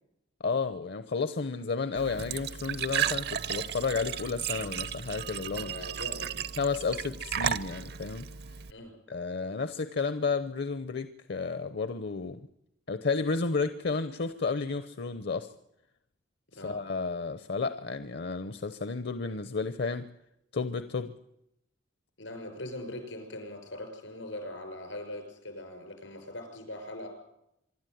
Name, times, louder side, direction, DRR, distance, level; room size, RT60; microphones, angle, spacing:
voice 1, 0.4-5.7 6.6-8.2 9.1-12.4 12.9-15.5 16.6-20.1 20.5-21.1, left 4 dB, 60° left, 11 dB, 0.8 m, -32 dB
Glass / Trickle dribble / Fill (with liquid), 2.0-8.7, right 9 dB, 60° right, 0.7 m, -34 dB
voice 2, 5.4-6.5 8.7-8.9 16.6-16.8 22.2-27.1, left 1 dB, 85° left, 6 dB, 6.1 m, -41 dB
25.0 x 12.5 x 9.3 m, 0.81 s
head